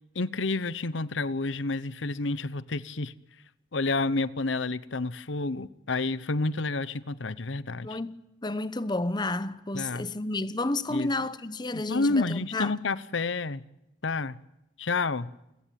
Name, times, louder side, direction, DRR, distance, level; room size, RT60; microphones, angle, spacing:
voice 1, 0.1-3.1 3.7-8.0 9.7-10.1 10.9-11.1 11.7-13.6 14.0-14.4 14.8-15.3, left 3 dB, 85° left, 0.9 m, -29 dB
voice 2, 7.8-12.7, left 2 dB, 25° left, 0.9 m, -31 dB
29.0 x 17.5 x 9.4 m
head